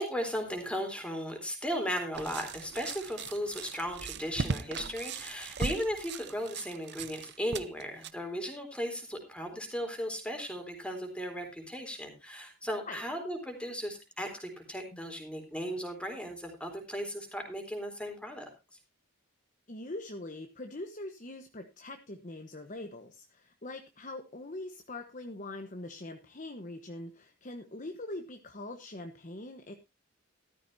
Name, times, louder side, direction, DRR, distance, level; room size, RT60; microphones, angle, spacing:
voice 1, 0.0-18.5, equal, 5° left, 4 dB, 3.7 m, -36 dB
sound 1, 2.1-8.1, right 4 dB, 55° right, 0.7 m, -38 dB
voice 2, 19.7-29.7, left 2 dB, 35° left, 5 dB, 1.2 m, -43 dB
14.5 x 13.0 x 2.7 m, 0.26 s
head